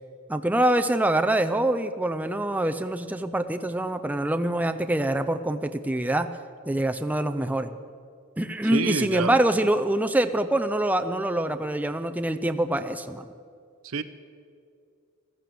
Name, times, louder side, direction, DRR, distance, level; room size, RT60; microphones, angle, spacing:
voice 1, 0.3-6.3 6.7-7.7 8.4-13.2, right 1 dB, 5° right, 7 dB, 0.5 m, -25 dB
voice 2, 8.7-9.4 13.8-14.0, right 4 dB, 85° right, 11 dB, 0.7 m, -27 dB
15.0 x 14.0 x 6.9 m, 2.3 s
head